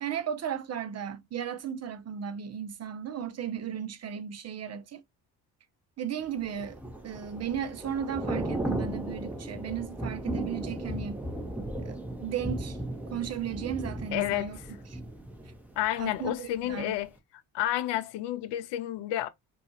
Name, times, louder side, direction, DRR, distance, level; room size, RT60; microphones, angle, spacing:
voice 1, 0.0-5.0 6.0-6.8 7.0-11.2 11.8-12.8 13.1-14.6 14.9-15.0 16.0-17.0, right 8 dB, 35° right, 0.5 m, -35 dB
Thunder / Rain, 6.4-16.3 16.6-16.9, right 1 dB, 5° right, 0.8 m, -36 dB
voice 2, 14.1-14.5 15.8-17.1 17.5-19.3, left 13 dB, 60° left, 0.5 m, -30 dB
2.4 x 2.3 x 2.8 m
hypercardioid pair, 55°, 48 cm